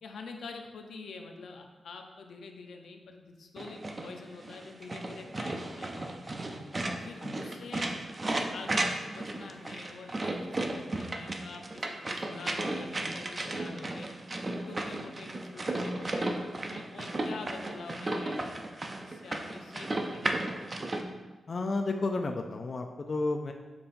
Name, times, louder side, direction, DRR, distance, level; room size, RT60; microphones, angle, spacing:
voice 1, 0.0-6.2 7.0-7.9 8.2-14.1 14.5-18.6 19.1-20.4, left 4 dB, 85° left, 4 dB, 0.6 m, -46 dB
sound 1, 3.6-21.0, right 2 dB, 30° right, 0.5 m, -34 dB
voice 2, 21.5-23.5, left 3 dB, 45° left, 4 dB, 0.4 m, -31 dB
6.8 x 5.3 x 2.6 m, 1.2 s
wide cardioid pair, 120°, 0 cm